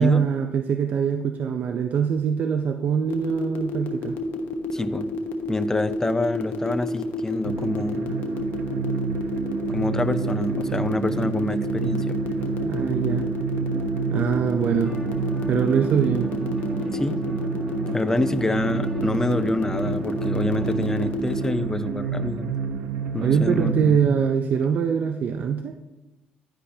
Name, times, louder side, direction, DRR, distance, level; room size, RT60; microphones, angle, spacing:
voice 1, 0.0-4.2 12.6-13.3 14.1-15.0 15.5-16.3 23.2-25.8, right 7 dB, 60° right, 7 dB, 0.5 m, -23 dB
sound 1, 3.1-21.5, left 5 dB, 85° left, 1.0 m, -31 dB
voice 2, 4.7-5.1 5.5-8.3 9.7-12.2 16.9-17.2 17.9-22.5 23.1-23.8 24.0-24.2, left 2 dB, 15° left, 12 dB, 0.5 m, -27 dB
sound 2, 7.4-23.9, right 6 dB, 90° right, 0.8 m, -29 dB
sound 3, 14.8-21.1, right 1 dB, 5° right, 1.5 m, -40 dB
10.5 x 9.7 x 2.8 m, 1.1 s
cardioid pair, 95°, 3 cm